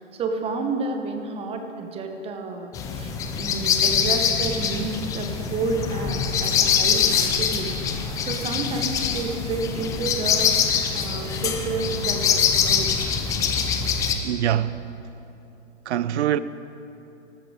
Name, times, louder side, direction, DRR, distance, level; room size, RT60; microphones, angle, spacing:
voice 1, 0.0-7.7 8.3-10.5 10.9-13.1, right 4 dB, 15° right, 0.9 m, -30 dB
sound 1, 2.7-14.2, left 7 dB, 10° left, 0.4 m, -24 dB
voice 2, 14.2-14.8 15.9-16.4, right 11 dB, 65° right, 0.6 m, -23 dB
13.5 x 13.0 x 5.0 m
hypercardioid pair, 130°, 37 cm